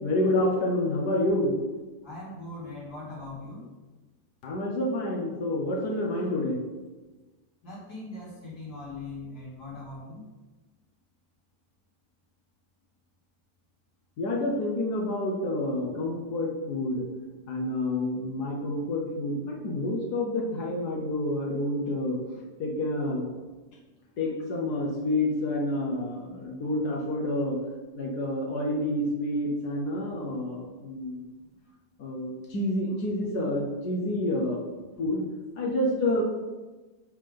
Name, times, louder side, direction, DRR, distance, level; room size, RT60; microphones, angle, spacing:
voice 1, 0.0-1.6 4.4-6.6 14.2-17.1 17.5-23.3 24.2-27.6 27.9-31.2 32.0-34.6 35.0-35.2 35.6-36.2, left 1 dB, 70° left, -1 dB, 1.6 m, -28 dB
voice 2, 2.0-3.6 7.6-10.2 36.0-36.2, left 2 dB, 85° left, -7 dB, 3.3 m, -40 dB
8.8 x 3.7 x 5.2 m, 1.2 s
omnidirectional pair, 1.8 m